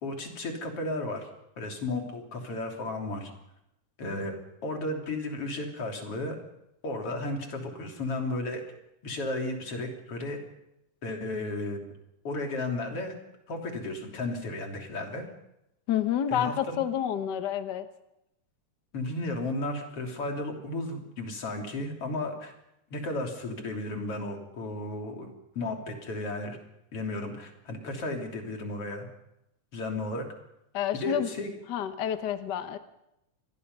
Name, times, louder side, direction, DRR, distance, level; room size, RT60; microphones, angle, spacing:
voice 1, 0.0-1.3 1.6-3.3 4.0-4.4 4.6-6.4 6.8-8.6 9.0-10.4 11.0-11.8 12.2-13.1 13.5-15.3 16.3-16.8 18.9-22.5 22.9-26.6 26.9-29.1 29.7-30.3 30.9-31.6, left 2 dB, 45° left, 2 dB, 4.0 m, -34 dB
voice 2, 15.9-17.9 30.7-31.3 31.7-32.8, left 10 dB, 75° left, 9 dB, 0.9 m, -29 dB
26.5 x 21.0 x 5.5 m, 0.85 s
omnidirectional pair, 3.6 m